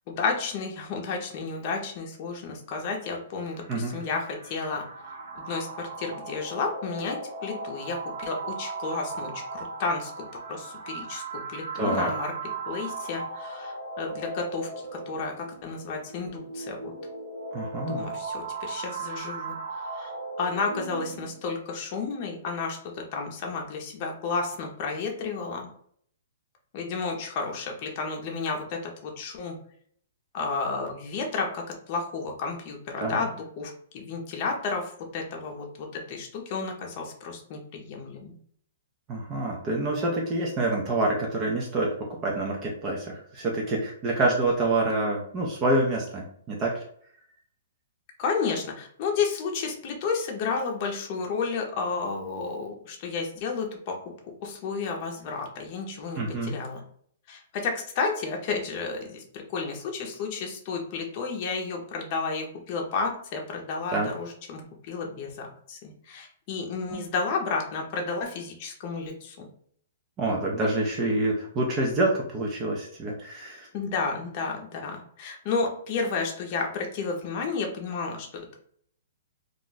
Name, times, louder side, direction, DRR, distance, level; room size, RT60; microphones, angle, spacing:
voice 1, 0.1-4.8 5.4-12.3 12.7-16.9 17.9-25.7 26.7-29.6 30.3-38.3 48.2-56.8 57.3-69.5 73.7-78.6, left 4 dB, 40° left, 1 dB, 0.7 m, -32 dB
sound 1, 3.5-21.5, right 3 dB, 85° right, 0.8 m, -37 dB
voice 2, 11.7-12.1 17.5-18.1 33.0-33.2 39.1-46.8 56.2-56.6 63.9-64.1 66.9-67.0 70.2-73.7, right 2 dB, 25° right, -2 dB, 0.5 m, -27 dB
2.5 x 2.1 x 3.9 m, 0.62 s
hypercardioid pair, 150°, 0 cm